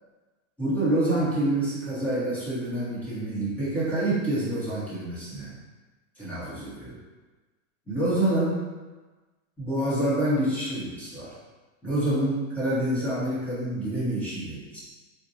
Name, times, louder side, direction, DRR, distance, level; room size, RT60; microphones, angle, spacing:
voice 1, 0.6-5.5 6.2-7.0 7.9-8.6 9.6-11.3 11.8-14.8, right 1 dB, 5° left, -10 dB, 0.5 m, -27 dB
3.7 x 2.3 x 2.6 m, 1.3 s
supercardioid pair, 165°, 38 cm